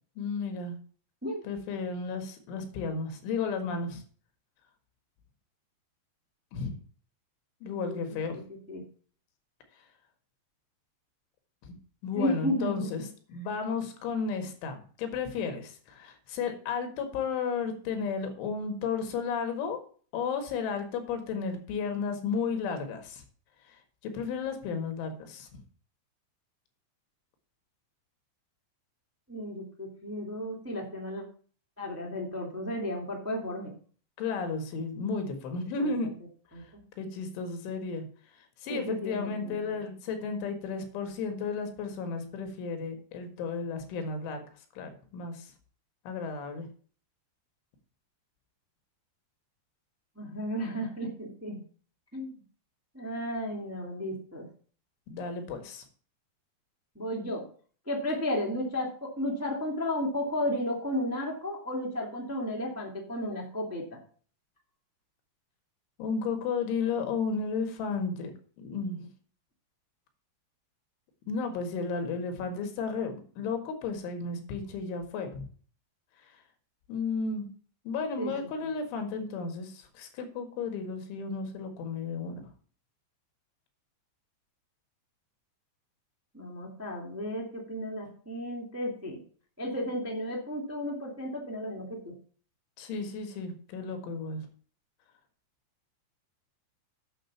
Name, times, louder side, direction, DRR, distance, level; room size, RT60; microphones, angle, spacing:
voice 1, 0.2-0.8 1.4-4.0 6.5-6.7 7.6-8.4 11.6-11.7 12.0-19.8 20.1-23.2 24.0-25.5 34.2-36.1 37.0-38.1 38.6-44.4 44.8-45.5 46.1-46.7 55.1-55.8 66.0-68.3 68.6-69.1 71.3-75.5 76.9-77.5 77.9-82.4 92.8-94.4, left 5 dB, 80° left, 6 dB, 4.2 m, -33 dB
voice 2, 12.1-12.9 29.3-31.2 31.8-33.7 35.8-36.1 36.5-36.8 38.6-39.8 50.1-51.6 52.1-52.3 52.9-54.4 56.9-57.4 57.8-63.8 78.2-78.3 78.6-78.7 86.3-89.2 89.6-92.1, left 1 dB, 5° right, 0 dB, 1.3 m, -33 dB
9.0 x 6.7 x 7.1 m, 0.43 s
omnidirectional pair, 5.4 m